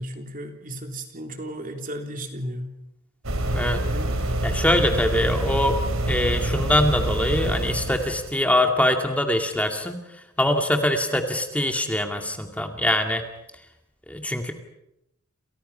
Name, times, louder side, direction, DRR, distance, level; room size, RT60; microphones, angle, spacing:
voice 1, 0.0-2.8 3.8-4.1 4.4-4.6, equal, 40° right, 5 dB, 3.6 m, -34 dB
sound 1, 3.2-8.3, right 1 dB, 70° right, 4.2 m, -26 dB
voice 2, 4.4-5.8 6.1-10.0 10.4-13.2 14.1-14.5, left 1 dB, 5° left, 5 dB, 2.3 m, -23 dB
29.0 x 28.5 x 5.7 m, 0.82 s
head